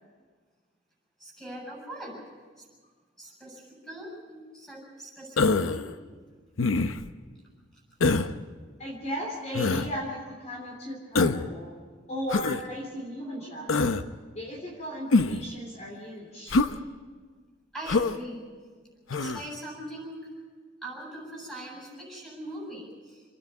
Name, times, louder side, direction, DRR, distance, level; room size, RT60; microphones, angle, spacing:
voice 1, 1.2-2.2 2.6-2.7 3.2-5.9 17.7-18.5 19.1-20.3 20.8-23.2, right 1 dB, 5° left, -4 dB, 7.4 m, -41 dB
Human voice, 5.4-5.8 6.6-7.1 8.0-8.3 9.5-9.9 11.1-11.5 12.3-12.6 13.7-14.0 15.1-15.5 16.5-16.7 17.9-18.2 19.1-19.4, left 3 dB, 85° left, 0.7 m, -24 dB
voice 2, 8.8-11.8 12.1-13.9 14.3-16.6, equal, 35° left, -2 dB, 3.3 m, -36 dB
28.0 x 10.0 x 9.4 m, 1.5 s
head